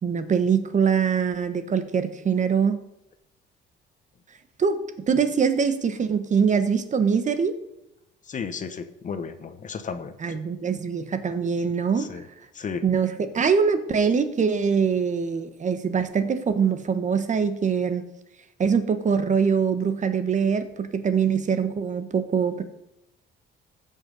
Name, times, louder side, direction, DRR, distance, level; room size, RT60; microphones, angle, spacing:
voice 1, 0.0-2.8 4.6-4.8 5.1-7.5 10.2-12.1 12.8-18.0 18.6-22.6, right 6 dB, 40° right, 10 dB, 1.1 m, -23 dB
voice 2, 8.3-10.1 12.1-12.2 12.6-12.8, left 6 dB, 40° left, 10 dB, 1.0 m, -33 dB
15.5 x 5.7 x 5.4 m, 0.88 s
cardioid pair, 115°, 20 cm